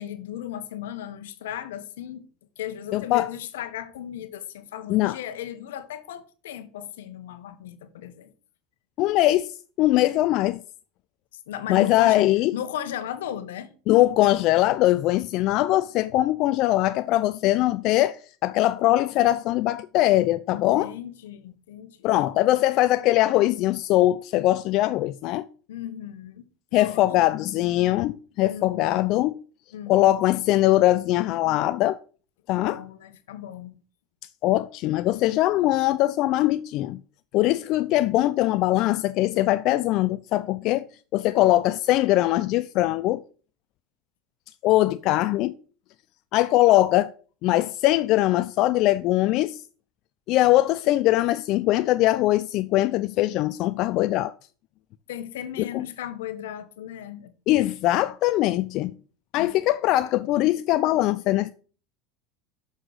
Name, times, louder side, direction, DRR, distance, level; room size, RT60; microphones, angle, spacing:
voice 1, 0.0-2.3 2.6-8.3 11.5-13.7 20.5-22.1 25.7-26.4 26.7-27.1 28.4-29.0 29.7-30.3 32.6-33.7 55.1-57.3 59.4-59.5, left 10 dB, 85° left, 0.9 m, -36 dB
voice 2, 2.9-3.3 4.9-5.2 9.0-10.6 11.7-12.5 13.9-20.9 22.0-25.5 26.7-29.3 29.9-32.0 32.5-32.8 34.4-37.0 37.3-40.9 41.1-43.2 44.6-45.5 46.3-47.1 47.4-49.6 50.3-54.3 55.6-55.8 57.5-58.9 59.3-61.5, left 15 dB, 55° left, 0.3 m, -21 dB
6.4 x 6.3 x 3.9 m
supercardioid pair, 105°, 0 cm